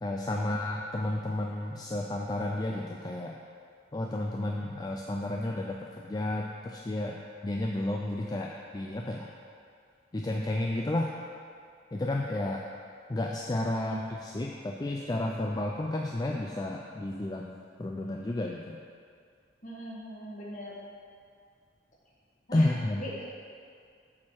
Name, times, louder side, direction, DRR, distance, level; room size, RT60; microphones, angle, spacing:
voice 1, 0.0-3.4 3.9-7.2 7.4-9.3 10.1-11.1 11.9-12.6 13.1-18.8 22.5-23.0, left 1 dB, 20° left, 0 dB, 0.4 m, -32 dB
voice 2, 13.7-14.0 19.6-20.8 22.5-22.7 23.0-23.2, equal, 45° left, -5 dB, 1.7 m, -41 dB
7.4 x 6.3 x 4.6 m, 2.2 s
head